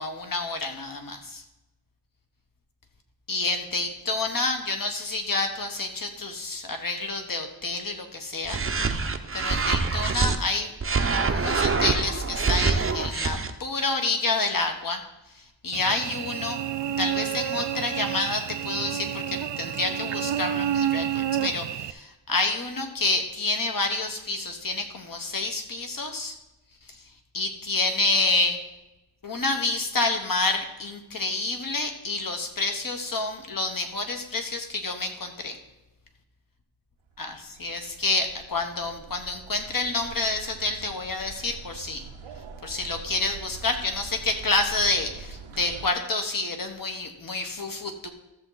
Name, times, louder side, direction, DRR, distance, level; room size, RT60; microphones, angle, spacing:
voice 1, 0.0-1.4 3.3-8.6 9.3-10.7 11.3-15.0 15.3-16.6 17.0-26.3 26.9-27.0 27.3-28.6 29.2-35.6 37.2-37.3 37.6-42.1 42.6-48.1, left 3 dB, 45° left, 5 dB, 1.3 m, -28 dB
sound 1, 8.4-10.4 10.8-13.5, right 4 dB, 30° right, 0.7 m, -25 dB
Cricket / Buzz, 15.7-21.9, right 10 dB, 65° right, 0.5 m, -29 dB
sound 2, 37.1-45.9, right 5 dB, 85° right, 0.9 m, -44 dB
14.0 x 7.1 x 4.0 m, 0.96 s
wide cardioid pair, 125°, 47 cm